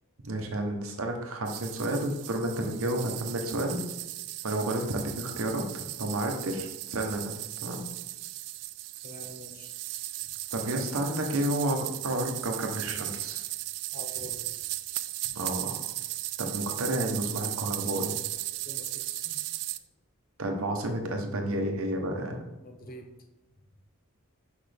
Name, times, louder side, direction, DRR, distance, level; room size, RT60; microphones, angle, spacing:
voice 1, 0.2-3.8 4.4-7.3 7.6-7.8 10.5-13.5 15.3-15.8 16.4-18.1 20.4-22.4, right 1 dB, 65° right, 3 dB, 0.9 m, -31 dB
sound 1, 1.5-19.8, right 16 dB, 85° right, 0.3 m, -36 dB
voice 2, 9.0-9.7 13.9-14.4 18.6-19.4 22.6-23.1, left 1 dB, 40° left, 4 dB, 0.9 m, -45 dB
6.1 x 5.3 x 3.4 m, 1.0 s
head